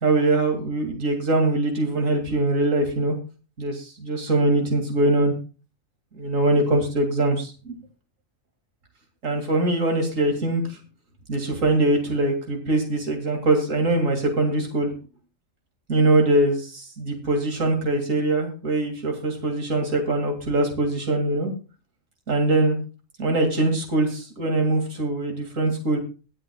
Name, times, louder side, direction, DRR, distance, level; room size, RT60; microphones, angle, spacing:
voice 1, 0.0-3.1 3.6-5.3 6.1-7.7 9.2-10.8 11.3-14.9 15.9-21.5 22.3-22.8 23.2-26.0, right 2 dB, 80° right, 3 dB, 2.9 m, -22 dB
23.0 x 7.8 x 2.3 m, 0.34 s
omnidirectional pair, 1.3 m